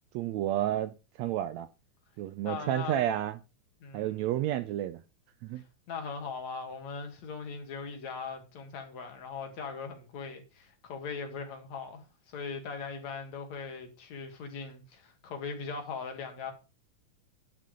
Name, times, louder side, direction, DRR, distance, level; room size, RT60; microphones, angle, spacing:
voice 1, 0.1-1.7 2.2-3.4 3.9-5.0 5.4-5.6, right 12 dB, 80° right, 1.7 m, -31 dB
voice 2, 2.4-3.0 3.8-4.3 5.9-16.5, left 5 dB, 65° left, 3.2 m, -40 dB
11.0 x 6.1 x 5.0 m
omnidirectional pair, 3.6 m